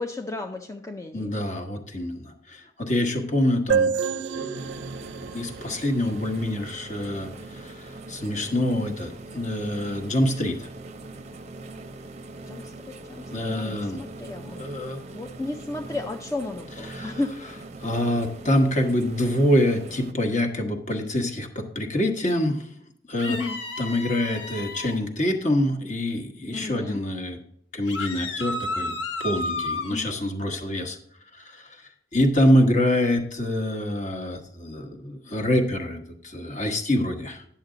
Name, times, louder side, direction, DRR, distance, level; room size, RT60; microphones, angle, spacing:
voice 1, 0.0-1.3 12.5-14.6 15.1-17.6 23.2-23.6 26.5-27.0 29.9-30.2, left 2 dB, 15° left, 3 dB, 0.5 m, -33 dB
voice 2, 1.1-4.8 5.3-10.7 13.3-14.0 14.5-15.0 16.9-17.1 17.8-22.7 23.1-23.4 23.8-27.4 27.7-28.9 29.2-31.0 31.3-31.8 32.1-37.5, left 1 dB, 40° left, 4 dB, 1.2 m, -25 dB
sound 1, 3.7-7.2, right 6 dB, 85° right, 0.5 m, -29 dB
sound 2, 4.5-20.1, right 2 dB, 35° right, 0.6 m, -41 dB
sound 3, 23.2-25.0 27.9-29.9, left 2 dB, 80° left, 1.1 m, -32 dB
10.0 x 7.3 x 3.8 m, 0.69 s
head